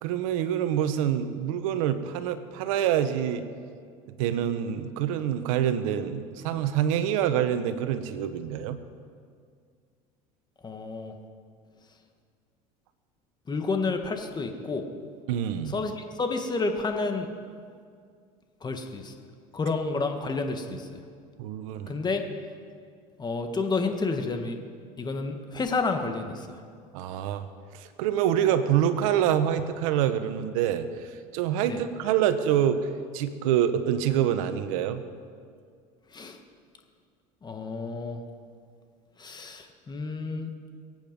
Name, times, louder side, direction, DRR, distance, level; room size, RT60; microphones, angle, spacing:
voice 1, 0.0-3.5 4.1-8.8 15.3-15.7 21.4-22.0 26.9-27.5 27.7-32.8 33.1-35.0, right 10 dB, 80° right, 11 dB, 1.1 m, -26 dB
voice 2, 10.6-11.2 13.5-14.9 15.7-17.3 18.6-19.2 19.5-21.0 21.9-22.2 23.2-24.6 25.0-26.6 31.7-31.8 36.1-36.4 37.4-38.2 39.2-40.5, left 3 dB, 25° left, 5 dB, 1.9 m, -30 dB
23.0 x 9.2 x 5.4 m, 2.1 s
supercardioid pair, 95°, 17 cm